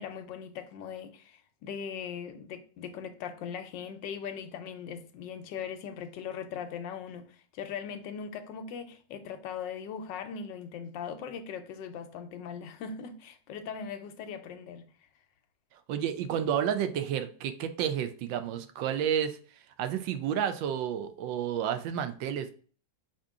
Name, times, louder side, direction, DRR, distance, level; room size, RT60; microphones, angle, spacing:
voice 1, 0.0-14.9, left 7 dB, 80° left, 1.2 m, -40 dB
voice 2, 15.9-19.4 19.8-22.5, right 9 dB, 85° right, 1.3 m, -30 dB
4.9 x 2.9 x 3.5 m
omnidirectional pair, 2.0 m